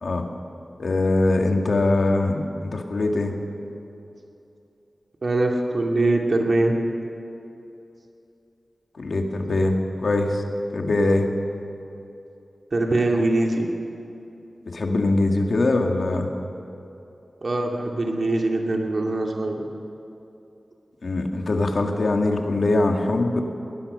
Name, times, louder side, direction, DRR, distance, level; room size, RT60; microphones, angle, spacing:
voice 1, 0.8-3.4 9.0-10.4 10.7-11.3 14.7-16.3 21.0-23.4, left 2 dB, 75° left, 3 dB, 2.0 m, -22 dB
voice 2, 5.2-6.7 12.7-13.7 17.4-19.6, right 2 dB, 60° right, 1 dB, 2.5 m, -22 dB
21.0 x 18.5 x 6.7 m, 2.8 s
wide cardioid pair, 85°, 0 cm